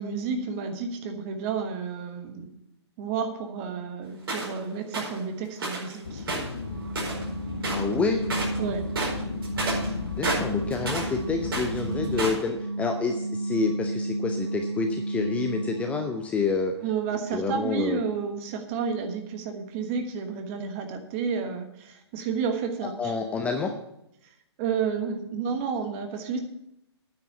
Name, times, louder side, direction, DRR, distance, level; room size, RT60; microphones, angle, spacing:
voice 1, 0.0-2.5 3.0-6.3 8.6-8.9 16.8-23.1 24.6-26.4, right 6 dB, 30° right, 6 dB, 1.3 m, -31 dB
sound 1, 4.3-4.6 4.9-5.2 5.6-5.9 6.2-7.3 7.6-7.9 8.2-8.6 8.9-11.1 11.4-12.5, right 2 dB, 55° right, 4.8 m, -30 dB
sound 2, 6.0-12.4, left 4 dB, 55° left, 0.9 m, -35 dB
sound 3, 6.6-16.3, right 2 dB, 80° right, 0.8 m, -33 dB
voice 2, 7.7-8.2 10.1-16.7 17.3-18.0 23.0-23.7, left 4 dB, 10° left, 4 dB, 0.5 m, -28 dB
9.3 x 5.9 x 8.0 m, 0.81 s
figure-of-eight pair, 125°, 14 cm